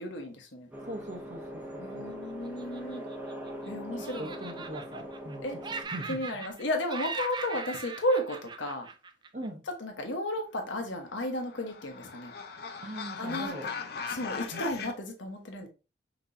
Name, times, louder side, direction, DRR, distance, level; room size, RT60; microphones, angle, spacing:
voice 1, 0.0-0.7 1.8-3.0 3.7-4.4 5.4-5.6 6.1-8.9 9.8-12.3 13.2-13.7 14.1-15.7, left 1 dB, 85° left, 1.1 m, -33 dB
sound 1, 0.7-5.8, equal, 10° right, 0.8 m, -41 dB
voice 2, 0.9-2.2 3.9-6.4 9.3-9.6 12.8-13.7 14.5-14.6, right 1 dB, 40° right, 0.9 m, -41 dB
Laughter, 2.4-3.7 4.0-5.4 5.6-6.6 6.9-9.5, right 4 dB, 25° right, 0.4 m, -40 dB
sound 2, 11.0-14.9, left 5 dB, 55° left, 0.6 m, -39 dB
5.8 x 2.9 x 2.7 m
head